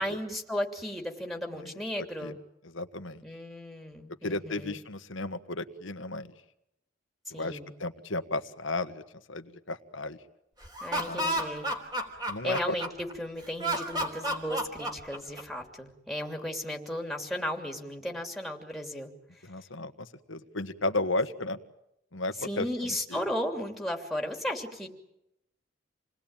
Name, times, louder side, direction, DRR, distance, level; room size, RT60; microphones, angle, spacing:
voice 1, 0.0-2.3 3.2-4.8 7.3-7.7 10.8-11.7 12.4-19.1 22.4-24.9, equal, ahead, 2 dB, 3.0 m, -35 dB
voice 2, 2.0-2.3 2.7-3.2 4.2-6.3 7.3-9.0 9.3-10.2 10.9-11.5 12.3-12.7 19.4-21.6 22.1-23.2, left 2 dB, 80° left, 9 dB, 1.5 m, -34 dB
Laughter, 10.6-13.1 13.6-15.6, right 1 dB, 20° right, 3.4 m, -31 dB
28.0 x 20.0 x 9.0 m, 0.84 s
head